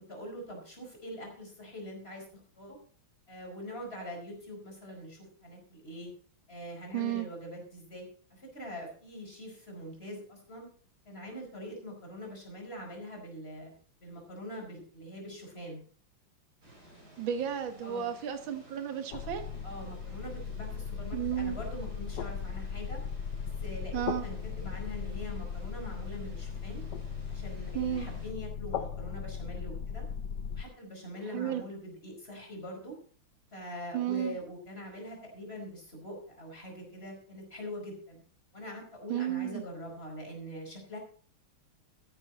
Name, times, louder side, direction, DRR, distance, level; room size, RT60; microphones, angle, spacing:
voice 1, 0.0-2.3 2.5-2.8 3.3-6.1 6.5-10.7 11.0-13.7 14.0-15.8 17.8-18.1 19.6-23.0 23.4-26.8 27.3-30.1 30.5-33.0 33.5-38.2 38.5-41.0, equal, 25° left, 1 dB, 5.1 m, -43 dB
voice 2, 6.9-7.3 17.2-19.5 21.1-21.6 23.9-24.2 27.7-28.1 31.3-31.6 33.9-34.4 39.1-39.6, right 10 dB, 65° right, 8 dB, 2.1 m, -33 dB
sound 1, 16.6-28.3, right 1 dB, 45° right, 5.1 m, -56 dB
sound 2, 19.1-30.6, left 7 dB, 60° left, 1.3 m, -38 dB
13.5 x 11.0 x 4.2 m, 0.43 s
omnidirectional pair, 2.4 m